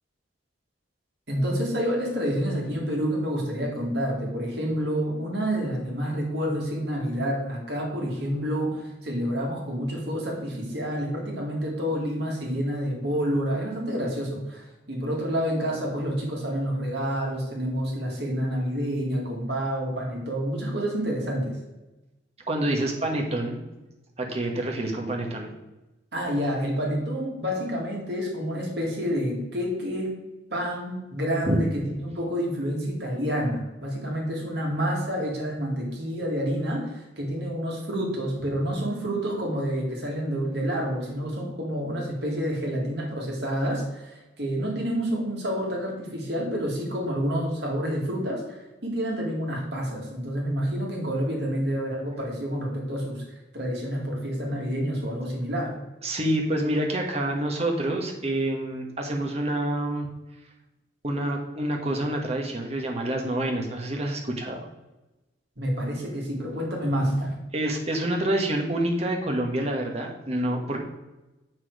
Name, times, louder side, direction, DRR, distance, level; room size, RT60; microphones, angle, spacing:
voice 1, 1.3-21.6 26.1-30.2 30.5-55.7 65.6-67.3, equal, 55° right, -2 dB, 2.3 m, -28 dB
voice 2, 22.5-23.6 24.2-25.5 31.4-31.6 56.0-60.1 61.0-64.7 67.5-70.8, right 1 dB, 30° right, 1 dB, 1.3 m, -27 dB
7.3 x 6.2 x 4.8 m, 1.0 s
head